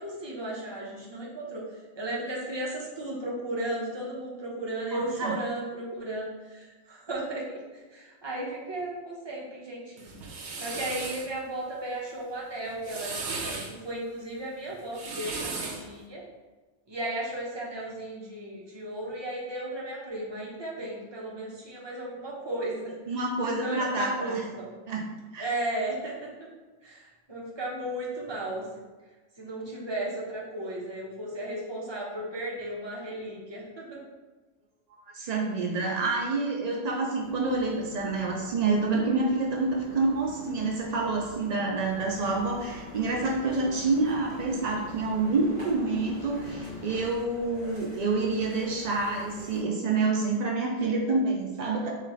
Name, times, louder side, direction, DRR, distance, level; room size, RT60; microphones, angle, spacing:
voice 1, 0.0-1.6 2.0-7.4 7.9-10.1 10.6-13.6 13.8-16.2 16.9-22.9 23.4-24.7 25.4-26.1 26.4-26.5 26.8-28.7 29.4-34.0, right 1 dB, 25° right, -4 dB, 0.7 m, -35 dB
voice 2, 4.9-5.4 23.1-24.4 24.9-25.1 25.3-25.5 35.1-51.9, right 3 dB, 85° right, -1 dB, 0.3 m, -28 dB
sound 1, 10.0-11.3 12.6-13.7 14.8-15.9, right 3 dB, 65° right, 0.9 m, -36 dB
sound 2, 37.2-47.1, left 2 dB, 40° left, 0.8 m, -44 dB
sound 3, 41.8-49.6, right 1 dB, 45° right, 1.2 m, -48 dB
3.2 x 3.1 x 3.8 m, 1.3 s
omnidirectional pair, 1.3 m